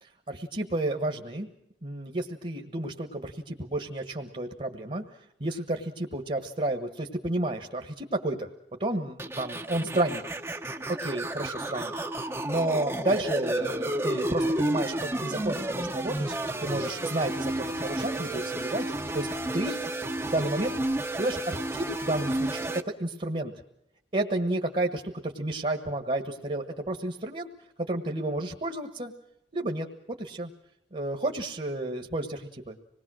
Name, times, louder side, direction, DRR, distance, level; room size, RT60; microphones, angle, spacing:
voice 1, 0.3-1.5 1.8-5.0 5.4-8.5 8.8-10.2 11.0-11.9 12.4-16.3 16.6-18.9 19.1-19.3 19.5-19.8 20.2-20.7 21.2-23.5 24.1-27.5 27.9-29.1 29.5-30.5 30.9-32.8, right 1 dB, 40° right, 5 dB, 1.4 m, -31 dB
sound 1, 9.2-22.8, right 1 dB, 15° right, 0.9 m, -31 dB
26.0 x 20.0 x 6.3 m, 0.80 s
head